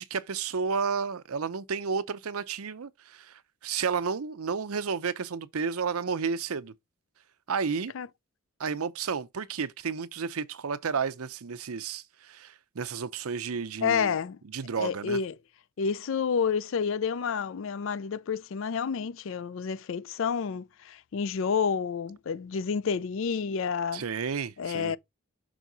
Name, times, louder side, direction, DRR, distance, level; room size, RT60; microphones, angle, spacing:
voice 1, 0.0-6.7 7.5-7.9 8.6-14.2 14.5-15.2 23.9-24.9, right 5 dB, 85° right, 0.6 m, -32 dB
voice 2, 13.8-14.4 14.8-15.3 15.8-24.0 24.6-25.0, left 6 dB, 65° left, 0.4 m, -29 dB
6.2 x 4.6 x 3.9 m
head